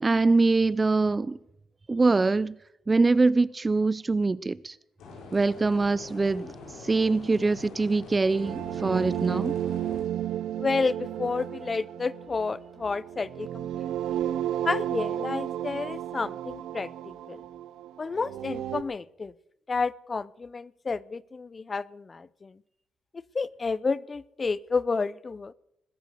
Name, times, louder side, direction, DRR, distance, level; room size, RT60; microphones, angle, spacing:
voice 1, 0.0-1.4 1.9-2.6 2.9-4.7 5.3-6.5 6.8-9.5, right 3 dB, 25° right, 0.4 m, -23 dB
sound 1, 5.0-10.0, left 3 dB, 80° left, 5.4 m, -44 dB
sound 2, 8.3-18.8, right 11 dB, 80° right, 0.7 m, -33 dB
voice 2, 10.6-14.2 14.6-16.9 17.3-17.4 18.0-19.3 19.7-22.6 23.3-25.5, left 4 dB, 30° left, 0.5 m, -30 dB
21.0 x 8.1 x 6.3 m
cardioid pair, 90°, 0 cm